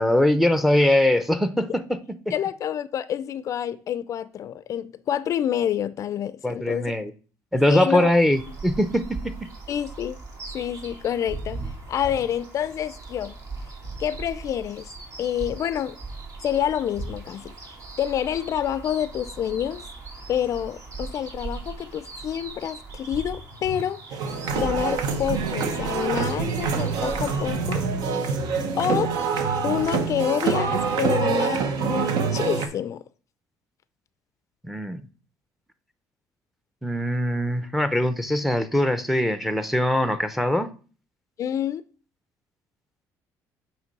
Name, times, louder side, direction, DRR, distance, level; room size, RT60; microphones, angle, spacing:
voice 1, 0.0-1.8 6.4-7.1 7.5-9.0 34.7-35.0 36.8-40.7, left 1 dB, ahead, 0.6 m, -21 dB
voice 2, 2.3-6.9 7.7-8.1 9.7-10.2 10.5-11.6 11.9-13.3 14.0-14.9 15.2-16.0 16.4-17.6 18.0-19.9 20.3-24.3 24.5-27.8 28.8-29.1 29.6-33.0 41.4-41.8, left 10 dB, 50° left, 0.4 m, -28 dB
sound 1, 8.3-27.5, right 3 dB, 55° right, 2.0 m, -38 dB
sound 2, 24.1-32.7, right 5 dB, 75° right, 0.9 m, -25 dB
8.0 x 3.1 x 5.3 m
cardioid pair, 120°, 7 cm